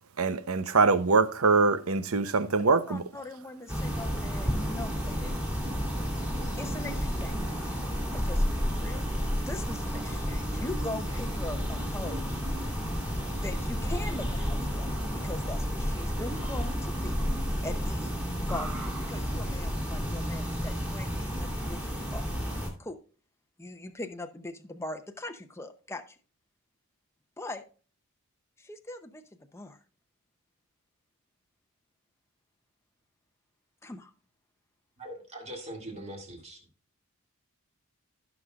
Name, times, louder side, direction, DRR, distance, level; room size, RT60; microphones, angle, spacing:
voice 1, 0.2-3.0, right 4 dB, 75° right, 0.8 m, -23 dB
voice 2, 2.9-5.4 6.6-7.8 8.1-9.1 9.4-12.3 13.3-17.2 17.6-18.1 18.5-22.3 22.8-23.0 23.6-26.2 27.4-27.6 28.6-29.2 29.5-29.8 33.8-34.1, left 2 dB, 10° left, 0.7 m, -41 dB
sound 1, 3.7-22.7, equal, 5° right, 2.4 m, -31 dB
voice 3, 35.0-36.6, right 1 dB, 30° right, 2.3 m, -42 dB
16.0 x 6.1 x 2.4 m
head